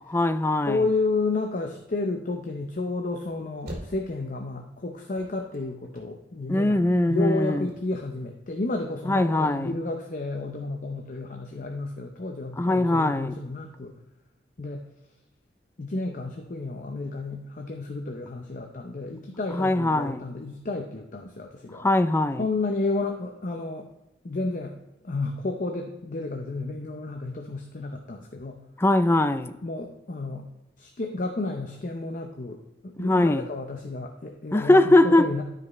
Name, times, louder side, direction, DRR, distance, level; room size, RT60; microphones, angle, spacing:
voice 1, 0.1-0.8 6.5-7.7 9.1-9.7 12.6-13.3 19.5-20.2 21.7-22.4 28.8-29.5 33.0-33.4 34.5-35.3, left 2 dB, 15° left, 0.3 m, -21 dB
voice 2, 0.7-6.8 7.1-13.9 14.6-14.9 15.8-21.8 22.4-23.9 24.2-24.8 25.0-28.6 29.6-30.5 30.8-35.4, left 3 dB, 45° left, 0.7 m, -31 dB
sound 1, 3.3-4.5 4.9-6.4 6.7-6.8 7.0-7.1 7.5-8.0, equal, 55° right, 2.3 m, -43 dB
12.0 x 5.2 x 3.1 m
head